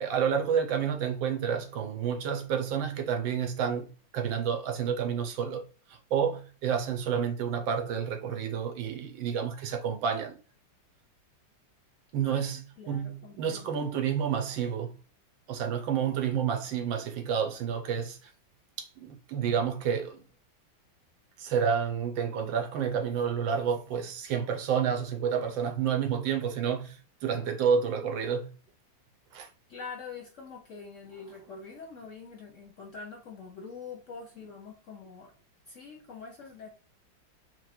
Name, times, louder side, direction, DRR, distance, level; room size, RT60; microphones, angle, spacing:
voice 1, 0.0-10.4 12.1-15.0 15.5-18.3 18.8-20.2 21.4-28.5 29.3-29.5, right 7 dB, 80° right, 1.5 m, -30 dB
voice 2, 12.8-13.7 29.3-35.3 35.7-36.7, left 5 dB, 55° left, 0.9 m, -45 dB
4.7 x 2.2 x 4.3 m
omnidirectional pair, 2.1 m